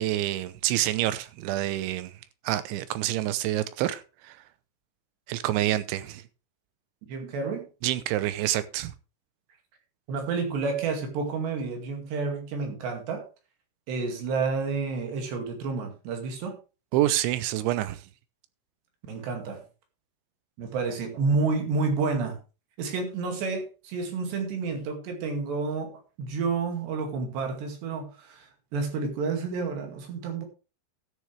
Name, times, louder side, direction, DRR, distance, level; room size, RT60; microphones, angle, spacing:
voice 1, 0.0-2.1 2.4-4.4 5.3-6.2 7.8-8.9 16.9-18.0, right 14 dB, 85° right, 3.2 m, -27 dB
voice 2, 7.1-7.7 10.1-13.3 13.9-16.6 19.1-19.6 20.6-22.4 22.8-30.5, right 4 dB, 70° right, 4.4 m, -30 dB
13.0 x 9.9 x 3.4 m
omnidirectional pair, 5.3 m